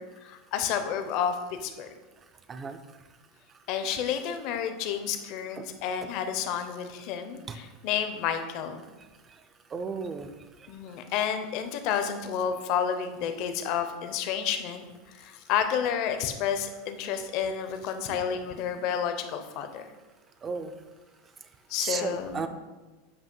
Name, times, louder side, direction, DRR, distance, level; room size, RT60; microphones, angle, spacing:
voice 1, 0.0-1.9 3.7-8.9 10.7-19.9 21.7-22.5, left 8 dB, 40° left, 8 dB, 0.6 m, -30 dB
voice 2, 9.7-10.3 20.4-20.7 21.8-22.5, right 5 dB, 15° right, 9 dB, 0.3 m, -33 dB
8.1 x 2.8 x 5.3 m, 1.2 s
supercardioid pair, 175°, 0 cm